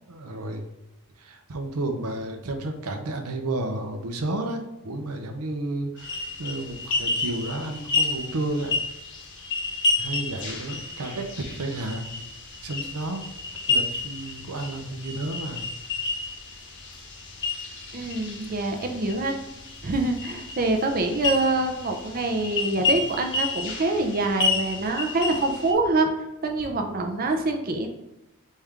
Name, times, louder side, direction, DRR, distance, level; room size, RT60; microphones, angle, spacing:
voice 1, 0.1-0.6 1.2-8.8 10.0-12.1 12.6-13.2 13.7-15.7 22.7-22.9, right 2 dB, 80° right, 5 dB, 0.7 m, -32 dB
sound 1, 6.0-25.7, left 3 dB, 55° left, 0.9 m, -30 dB
voice 2, 17.9-19.4 19.8-26.1 26.4-27.9, right 2 dB, 40° right, 4 dB, 0.6 m, -25 dB
4.2 x 3.6 x 3.4 m, 0.98 s
head